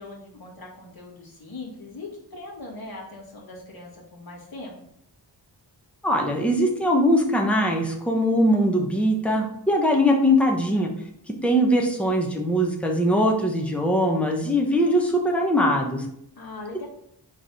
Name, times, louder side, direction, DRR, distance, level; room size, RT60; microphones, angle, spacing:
voice 1, 0.0-4.7 16.4-16.9, left 2 dB, 55° left, -3 dB, 2.0 m, -40 dB
voice 2, 6.0-10.9 11.4-16.0, equal, 5° left, 0 dB, 1.0 m, -21 dB
4.8 x 3.9 x 5.4 m, 0.73 s
wide cardioid pair, 85°, 44 cm